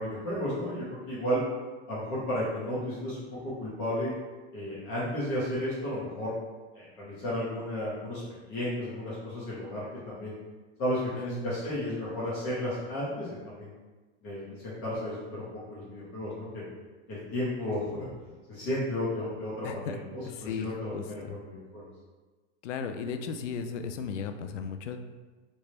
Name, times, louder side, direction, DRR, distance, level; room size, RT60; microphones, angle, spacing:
voice 1, 0.0-1.4 1.9-4.1 4.5-6.3 6.7-8.2 8.5-10.3 10.8-13.7 14.2-16.7 17.1-18.1 18.5-21.9, left 1 dB, 40° left, -9 dB, 1.4 m, -33 dB
voice 2, 11.1-11.5 19.6-21.4 22.6-25.0, left 6 dB, 90° left, 7 dB, 0.5 m, -36 dB
3.3 x 3.0 x 2.9 m, 1.3 s
hypercardioid pair, 120°, 35 cm